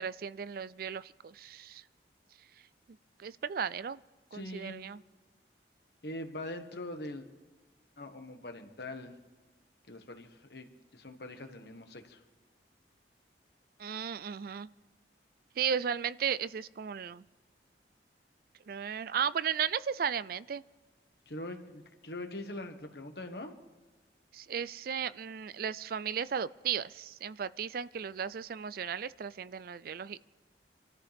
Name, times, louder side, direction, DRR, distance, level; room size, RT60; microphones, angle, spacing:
voice 1, 0.0-1.8 3.2-4.0 4.3-5.0 13.8-14.7 15.6-17.2 18.7-20.6 24.3-30.2, right 7 dB, 55° right, 17 dB, 0.4 m, -35 dB
voice 2, 4.3-4.7 6.0-7.3 8.0-9.1 9.9-12.2 21.3-23.6, left 1 dB, 65° left, 5 dB, 1.6 m, -42 dB
26.5 x 13.5 x 3.6 m, 1.2 s
head